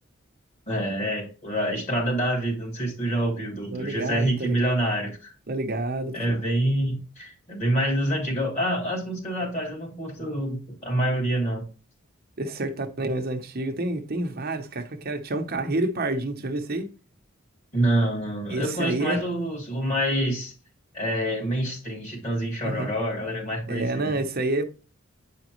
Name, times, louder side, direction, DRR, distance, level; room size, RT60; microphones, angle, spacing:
voice 1, 0.7-5.3 6.1-11.6 17.7-20.5 20.9-24.2, right 1 dB, 35° left, 3.3 m, -27 dB
voice 2, 3.7-4.6 5.5-6.4 12.4-16.9 18.5-19.2 22.6-22.9 23.7-24.6, right 2 dB, 50° right, 0.8 m, -28 dB
8.7 x 5.0 x 3.0 m
head